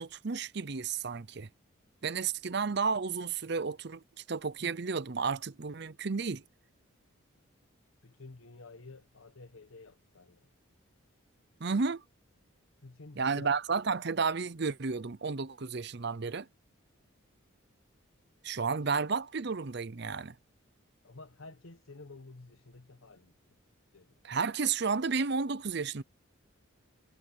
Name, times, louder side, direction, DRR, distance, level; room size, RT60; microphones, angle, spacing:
voice 1, 0.0-1.5 2.0-6.4 11.6-12.0 13.2-16.5 18.4-20.4 24.2-26.0, right 5 dB, 55° right, 0.7 m, -32 dB
voice 2, 8.0-10.5 12.8-13.6 18.8-18.9 21.0-23.4 23.9-24.2, left 3 dB, 80° left, 1.2 m, -51 dB
head